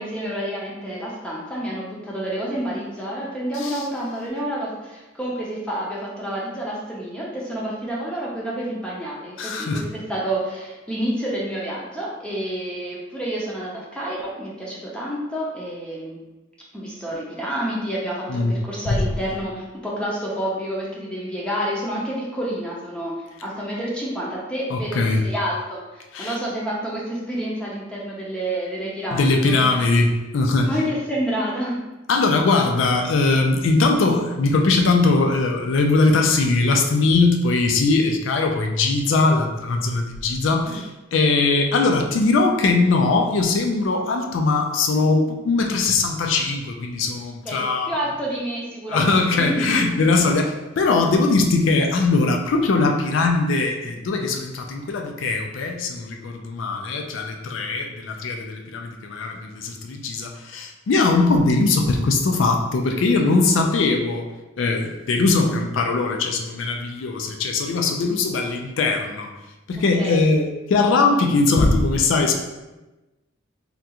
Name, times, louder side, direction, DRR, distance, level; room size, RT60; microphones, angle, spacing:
voice 1, 0.0-16.2 16.7-29.6 30.6-31.8 40.7-40.8 47.4-50.1 70.0-70.3, right 1 dB, 5° left, -6 dB, 0.5 m, -29 dB
voice 2, 9.4-9.8 18.3-18.5 18.9-19.0 24.7-25.2 26.1-26.4 29.1-30.7 32.1-47.9 48.9-64.3 64.6-69.3 69.7-72.3, left 3 dB, 80° left, 3 dB, 0.4 m, -20 dB
3.6 x 2.3 x 2.8 m, 1.1 s
head